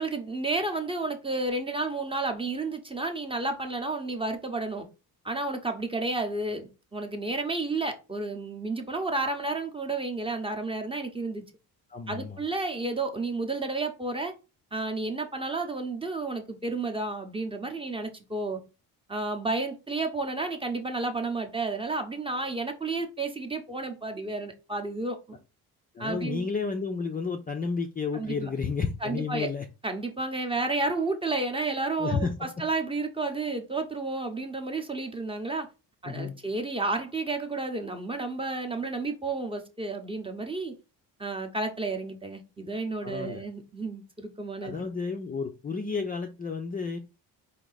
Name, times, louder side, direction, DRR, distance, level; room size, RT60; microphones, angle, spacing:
voice 1, 0.0-4.9 5.2-11.4 12.1-14.3 14.7-18.6 19.1-25.4 26.0-26.4 28.1-28.5 29.0-29.5 29.8-35.7 36.0-40.7 41.2-44.9, right 3 dB, 15° right, 5 dB, 0.8 m, -31 dB
voice 2, 11.9-12.4 25.9-29.7 32.0-32.6 36.0-36.4 43.0-43.4 44.6-47.0, left 5 dB, 25° left, 3 dB, 0.4 m, -31 dB
4.6 x 2.8 x 3.9 m, 0.29 s
cardioid pair, 140°, 40 cm